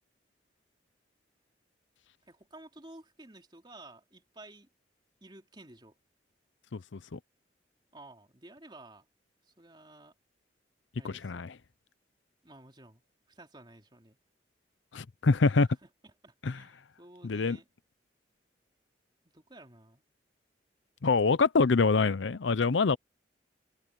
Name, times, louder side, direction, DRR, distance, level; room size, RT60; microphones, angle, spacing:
voice 1, 2.3-4.7 5.2-5.9 7.9-9.1 9.4-10.1 11.0-11.4 12.4-13.0 13.3-14.2 15.8-17.7 19.3-20.0, right 2 dB, 25° right, 3.2 m, -53 dB
voice 2, 6.7-7.2 11.0-11.5 14.9-15.7 16.4-16.5 17.2-17.6 21.0-23.0, left 4 dB, 80° left, 0.6 m, -25 dB
head